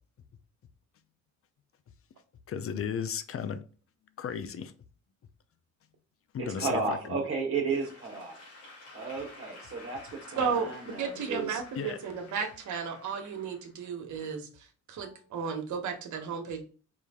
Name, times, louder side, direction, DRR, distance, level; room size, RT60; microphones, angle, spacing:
voice 1, 2.5-3.6 4.2-4.7 6.3-7.2 11.8-12.0 15.0-15.2, left 7 dB, 50° left, 0.6 m, -35 dB
voice 2, 6.4-8.4 8.9-11.6, right 4 dB, 45° right, 1.4 m, -33 dB
Applause / Crowd, 7.7-14.0, left 2 dB, 90° left, 2.4 m, -52 dB
voice 3, 10.4-14.5 14.9-16.6, right 6 dB, 70° right, 1.1 m, -34 dB
4.9 x 2.6 x 3.5 m
cardioid pair, 90°, 30 cm